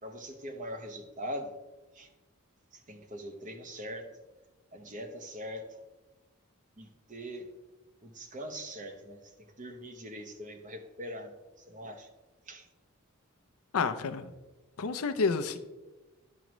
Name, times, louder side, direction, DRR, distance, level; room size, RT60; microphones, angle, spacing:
voice 1, 0.0-1.5 1.9-2.1 2.7-4.1 4.7-5.8 6.8-7.5 8.0-12.1 12.4-12.7, equal, 35° right, 6 dB, 0.8 m, -42 dB
voice 2, 13.7-14.3 14.8-15.6, left 4 dB, 85° left, 10 dB, 0.5 m, -29 dB
10.5 x 6.2 x 3.0 m, 1.1 s
head